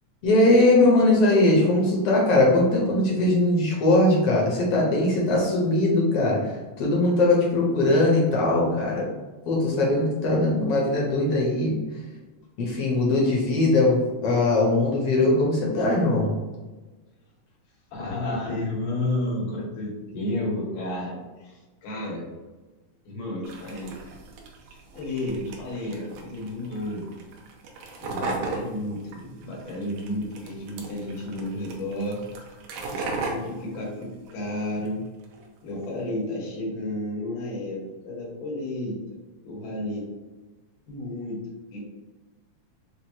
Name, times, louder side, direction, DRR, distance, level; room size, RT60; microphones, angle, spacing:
voice 1, 0.2-9.0 9.5-11.7 12.6-16.4, left 2 dB, 65° left, -3 dB, 1.5 m, -20 dB
voice 2, 17.9-22.3 23.1-24.0 24.9-27.1 28.0-32.2 32.9-35.0 35.6-39.0 39.4-40.0 40.9-41.4 41.7-41.8, left 1 dB, 90° left, -4 dB, 2.9 m, -31 dB
sound 1, 23.4-34.9 35.2-35.9, right 3 dB, 90° right, 2.1 m, -37 dB
6.1 x 2.4 x 2.8 m, 1.2 s
omnidirectional pair, 3.6 m